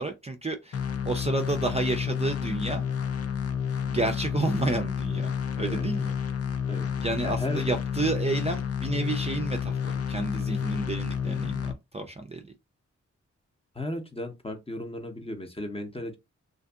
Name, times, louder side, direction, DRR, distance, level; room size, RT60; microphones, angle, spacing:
voice 1, 0.0-2.8 3.8-5.3 5.6-6.1 7.0-12.4, right 2 dB, 20° right, 0.4 m, -30 dB
sound 1, 0.7-11.7, left 7 dB, 50° left, 0.5 m, -30 dB
voice 2, 7.2-7.6 13.7-16.2, left 1 dB, 20° left, 0.7 m, -35 dB
2.5 x 2.5 x 2.3 m
cardioid pair, 45°, 31 cm